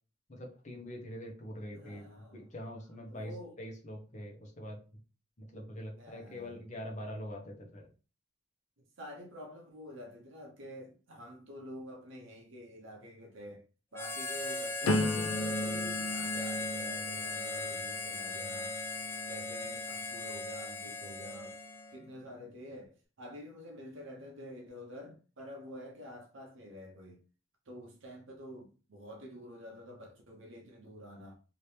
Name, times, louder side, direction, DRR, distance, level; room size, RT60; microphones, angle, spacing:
voice 1, 0.3-4.8 5.4-7.9, equal, 35° left, 0.9 m, -44 dB
voice 2, 1.7-2.4 3.1-3.6 5.9-6.6 9.0-13.6 13.9-21.6 21.9-27.2 27.7-31.3, equal, 60° right, 0.8 m, -48 dB
Harmonica, 13.9-22.0, left 3 dB, 10° left, 0.4 m, -38 dB
sound 1, 14.8-20.7 21.2-21.7, left 1 dB, 75° left, 0.5 m, -37 dB
2.9 x 2.8 x 3.2 m
head